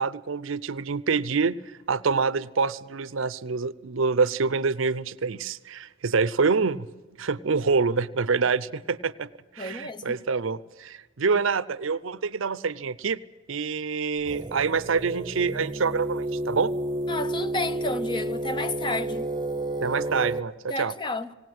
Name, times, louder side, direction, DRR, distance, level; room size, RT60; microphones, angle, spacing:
voice 1, 0.0-1.6 1.9-6.9 7.2-9.3 9.6-13.2 13.5-16.7 19.8-20.9, right 4 dB, 70° right, 0.6 m, -26 dB
voice 2, 9.6-10.2 17.1-19.3 20.7-21.3, left 2 dB, 20° left, 0.6 m, -31 dB
sound 1, 14.2-20.4, right 1 dB, 20° right, 0.8 m, -31 dB
19.0 x 18.5 x 7.7 m
head